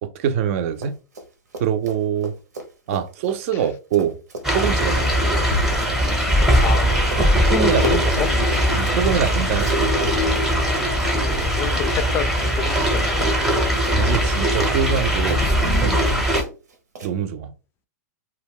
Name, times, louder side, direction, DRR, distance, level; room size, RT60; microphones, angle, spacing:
voice 1, 0.0-1.0 1.6-2.4 2.9-4.2 4.5-5.2 7.5-8.3 8.7-10.0 13.9-16.3 17.0-17.5, right 8 dB, 50° right, 0.4 m, -24 dB
Run, 0.7-1.3 1.5-12.9 13.2-17.1, right 2 dB, 85° right, 0.8 m, -35 dB
sound 1, 4.4-16.4, equal, 5° right, 0.7 m, -20 dB
sound 2, 4.9-16.3, left 5 dB, 80° left, 0.5 m, -33 dB
voice 2, 6.6-8.3 11.1-13.5, left 8 dB, 25° left, 0.4 m, -29 dB
2.2 x 2.1 x 3.6 m
hypercardioid pair, 120°, 9 cm